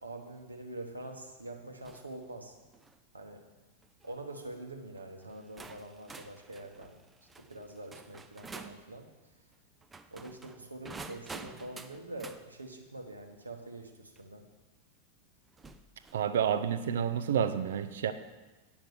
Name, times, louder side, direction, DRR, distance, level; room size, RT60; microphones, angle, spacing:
voice 1, 0.0-2.6 3.1-3.5 4.0-7.0 7.4-9.1 10.1-14.5, right 2 dB, 80° right, 3 dB, 1.1 m, -45 dB
sound 1, 1.8-2.1 2.6-3.0 3.8-4.1 5.0-5.1 5.6-8.8 9.8-12.4 14.2-14.3 15.5-16.3, right 3 dB, 15° right, 0.5 m, -49 dB
voice 2, 16.1-18.1, right 8 dB, 60° right, 11 dB, 0.6 m, -29 dB
9.1 x 5.8 x 6.8 m, 1.2 s
figure-of-eight pair, 90°, 0 cm